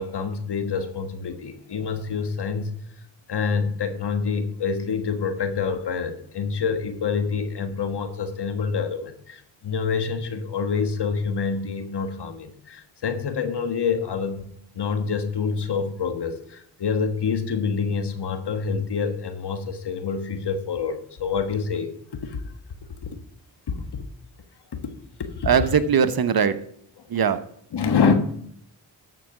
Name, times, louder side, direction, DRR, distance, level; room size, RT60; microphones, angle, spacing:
voice 1, 0.0-2.8 3.3-14.5 14.7-22.4 23.0-23.1 23.7-24.0 24.7-24.9 25.2-25.5 27.7-28.1, left 5 dB, 55° left, 8 dB, 1.4 m, -27 dB
voice 2, 25.4-26.6 27.1-27.4, right 7 dB, 50° right, 12 dB, 0.9 m, -20 dB
13.0 x 4.7 x 6.0 m, 0.68 s
supercardioid pair, 45°, 47 cm